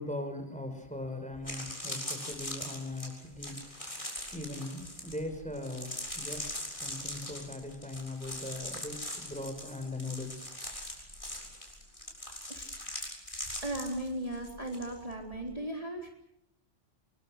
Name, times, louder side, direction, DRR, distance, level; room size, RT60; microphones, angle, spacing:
voice 1, 0.0-10.6, left 2 dB, 5° left, 6 dB, 5.5 m, -40 dB
sound 1, 0.8-0.9 1.3-14.9 15.1-15.5, left 1 dB, 25° left, 7.3 m, -41 dB
voice 2, 13.6-16.1, right 1 dB, 30° right, 0 dB, 3.9 m, -36 dB
27.0 x 24.0 x 6.6 m, 0.78 s
omnidirectional pair, 1.3 m